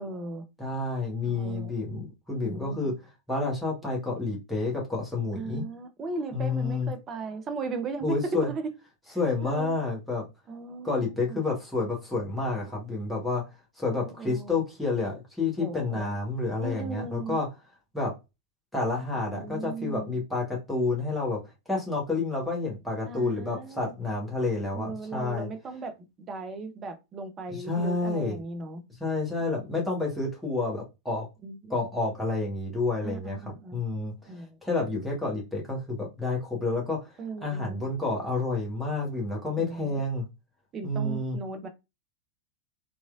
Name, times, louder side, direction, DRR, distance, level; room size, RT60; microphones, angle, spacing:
voice 1, 0.0-0.5 1.2-1.7 2.4-2.9 5.3-8.7 9.1-9.7 10.5-11.4 13.9-14.6 15.6-16.2 16.6-17.4 19.2-20.2 23.0-23.9 24.7-28.8 31.4-31.7 33.0-33.8 34.3-34.6 37.2-37.8 39.6-40.0 40.7-41.7, right 3 dB, 25° right, 8 dB, 0.5 m, -37 dB
voice 2, 0.6-2.9 3.3-5.7 6.3-6.9 8.0-8.5 9.2-10.2 10.8-13.4 13.8-17.5 17.9-18.1 18.7-21.4 21.7-25.5 27.5-28.4 29.0-31.3 31.7-34.1 34.6-37.1 37.4-40.3 40.8-41.4, left 3 dB, ahead, -4 dB, 1.1 m, -29 dB
3.0 x 2.3 x 2.4 m, 0.24 s
figure-of-eight pair, 90°, 0 cm